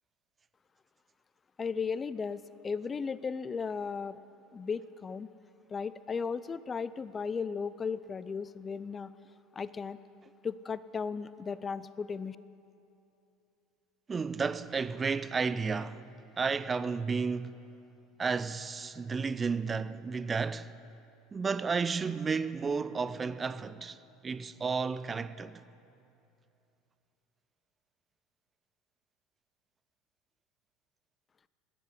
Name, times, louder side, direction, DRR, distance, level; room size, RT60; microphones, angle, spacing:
voice 1, 1.6-4.2 4.5-5.3 5.7-9.1 9.5-10.0 10.4-12.4, left 5 dB, 30° left, 0.4 m, -35 dB
voice 2, 14.1-16.1 16.4-17.6 18.2-20.7 21.3-24.0 24.2-25.6, right 5 dB, 25° right, 0.5 m, -32 dB
11.5 x 10.0 x 9.9 m
hypercardioid pair, 90°, 0 cm